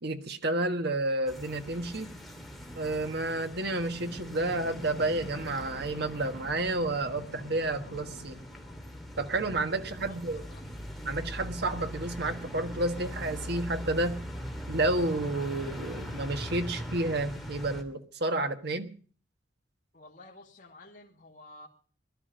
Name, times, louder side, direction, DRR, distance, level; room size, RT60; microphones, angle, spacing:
voice 1, 0.0-2.1 2.7-8.4 9.2-10.4 11.0-14.3 14.7-18.9, right 2 dB, 60° right, 7 dB, 1.5 m, -30 dB
sound 1, 1.3-17.8, equal, ahead, 2.4 m, -41 dB
sound 2, 3.8-9.0, left 1 dB, 60° left, 3.0 m, -47 dB
voice 2, 9.8-10.6 19.9-21.7, left 2 dB, 45° left, -3 dB, 2.6 m, -52 dB
20.0 x 12.5 x 5.1 m, 0.43 s
head